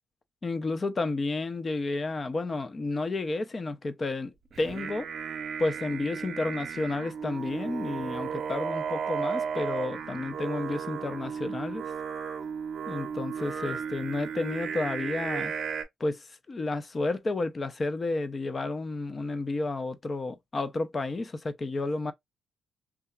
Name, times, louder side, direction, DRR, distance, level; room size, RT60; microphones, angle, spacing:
voice 1, 0.4-5.1 5.6-11.9 12.9-15.5 16.0-22.1, left 2 dB, 30° left, 0.4 m, -31 dB
Singing, 4.5-15.8, right 6 dB, 55° right, 0.7 m, -34 dB
2.8 x 2.3 x 2.2 m
cardioid pair, 90°, 0 cm